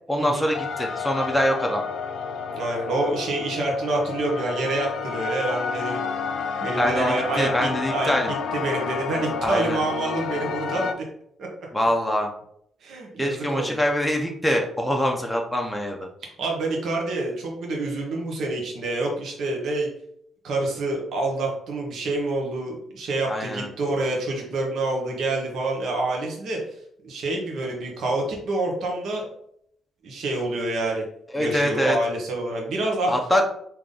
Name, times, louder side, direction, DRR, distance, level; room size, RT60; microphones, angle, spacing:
voice 1, 0.1-1.8 6.8-8.3 9.4-9.8 11.7-12.3 13.2-16.1 23.3-23.7 31.3-32.0 33.1-33.4, equal, 5° left, 1 dB, 0.6 m, -24 dB
sound 1, 0.5-10.9, left 6 dB, 70° left, 0.5 m, -30 dB
voice 2, 2.5-6.0 6.6-8.1 8.5-10.9 11.4-11.7 12.8-13.8 16.4-19.9 20.4-26.6 27.0-29.3 30.0-31.0 31.4-33.1, right 2 dB, 65° right, -1 dB, 1.1 m, -27 dB
3.6 x 2.9 x 3.7 m, 0.69 s
cardioid pair, 90°, 0 cm